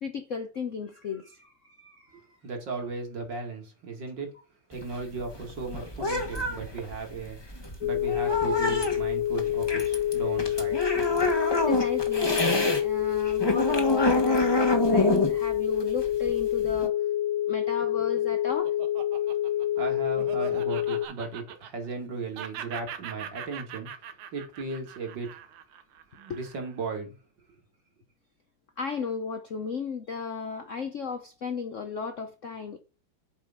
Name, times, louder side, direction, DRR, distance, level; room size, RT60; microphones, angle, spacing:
voice 1, 0.0-2.2 11.6-12.4 12.8-16.9 17.5-18.8 26.3-26.4 28.8-32.8, left 5 dB, 60° left, 0.8 m, -35 dB
voice 2, 2.1-4.3 4.7-7.4 7.8-10.9 19.8-23.9 24.3-25.3 26.1-27.2, right 4 dB, 60° right, 2.9 m, -36 dB
sound 1, 4.7-12.8 13.1-16.9, left 1 dB, 15° left, 1.1 m, -27 dB
sound 2, 7.8-21.1, left 12 dB, 75° left, 1.3 m, -27 dB
Laughter, 17.8-22.1 22.3-26.8, right 9 dB, 80° right, 1.9 m, -42 dB
8.2 x 5.1 x 3.9 m
omnidirectional pair, 2.3 m